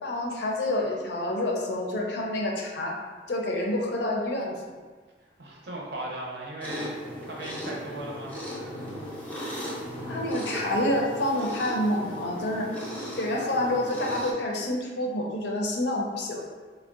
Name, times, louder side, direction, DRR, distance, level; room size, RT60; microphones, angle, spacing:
voice 1, 0.0-3.0 3.3-4.5 10.1-12.7 13.2-16.4, left 1 dB, 70° left, 0 dB, 0.5 m, -28 dB
voice 2, 5.4-8.7, right 1 dB, 60° right, -3 dB, 0.6 m, -37 dB
sound 1, 6.6-14.3, equal, 10° left, 0.5 m, -37 dB
3.6 x 2.1 x 2.4 m, 1.4 s
head